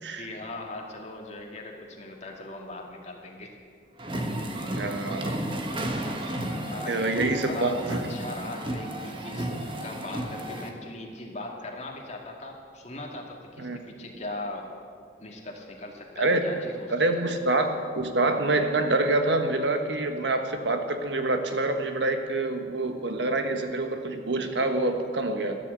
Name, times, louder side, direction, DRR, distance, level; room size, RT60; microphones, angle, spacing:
voice 1, 0.2-3.5 6.3-6.4 6.7-7.7 8.1-9.5 9.8-14.7 15.2-16.9 17.1-17.3, left 2 dB, 40° left, 0 dB, 2.3 m, -39 dB
sound 1, 4.0-10.7, right 1 dB, 30° right, 1.4 m, -33 dB
voice 2, 4.7-5.3 6.9-7.8 13.6-13.8 16.2-16.5 16.9-25.6, right 2 dB, 70° right, 6 dB, 1.3 m, -26 dB
14.5 x 11.0 x 8.1 m, 2.1 s
head